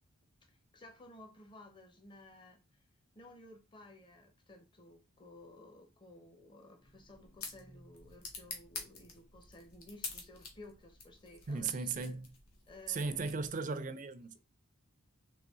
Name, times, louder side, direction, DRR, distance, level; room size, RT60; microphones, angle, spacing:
voice 1, 0.5-2.6 3.1-12.2 12.7-13.4, left 2 dB, 20° left, 0.7 m, -55 dB
sound 1, 6.8-13.7, left 4 dB, 75° left, 1.3 m, -49 dB
voice 2, 11.5-12.3 12.9-14.4, right 4 dB, 35° right, 0.4 m, -36 dB
3.9 x 3.3 x 3.6 m
head